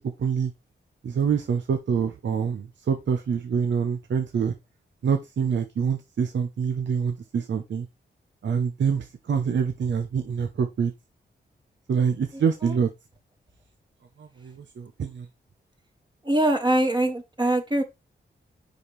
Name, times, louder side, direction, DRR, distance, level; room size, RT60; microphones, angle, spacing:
voice 1, 0.2-0.5 1.0-4.5 5.0-7.9 8.4-10.9 11.9-12.9 14.2-15.3, right 6 dB, 70° right, 0.8 m, -26 dB
voice 2, 16.2-17.8, right 1 dB, 25° right, 1.7 m, -23 dB
6.2 x 4.9 x 3.3 m
cardioid pair, 55°, 19 cm